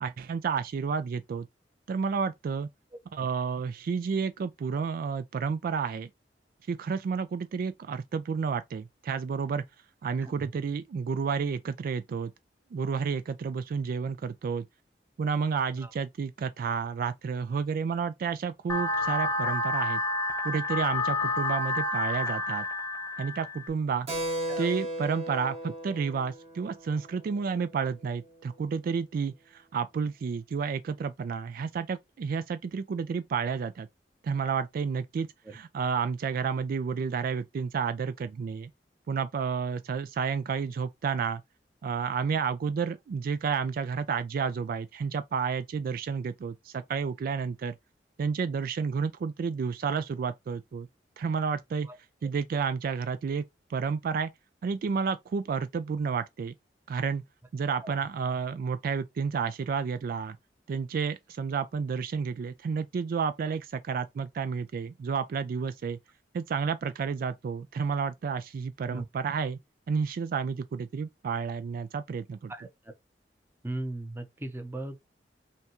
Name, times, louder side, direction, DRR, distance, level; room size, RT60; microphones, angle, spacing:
voice 1, 0.0-1.5 1.9-2.7 3.1-6.1 6.7-9.6 10.0-12.3 12.7-14.7 15.2-20.0 20.4-22.7 23.2-24.1 24.6-33.9 34.2-35.3 35.5-38.7 39.1-41.4 41.8-47.7 48.2-50.9 51.2-51.9 52.2-53.4 53.7-54.3 54.6-56.5 56.9-57.2 57.5-60.4 60.7-66.0 66.3-69.6 69.9-72.5, right 5 dB, 55° right, 0.3 m, -31 dB
voice 2, 10.2-10.5 15.8-15.9 24.5-24.7 35.4-35.6 51.8-52.0 57.8-58.1 68.9-69.0 72.5-72.9 73.6-75.0, right 2 dB, 15° right, 0.7 m, -38 dB
sound 1, 18.7-23.7, left 2 dB, 15° left, 0.9 m, -29 dB
Keyboard (musical), 24.1-28.2, right 1 dB, 40° right, 1.3 m, -36 dB
5.6 x 2.3 x 2.9 m
head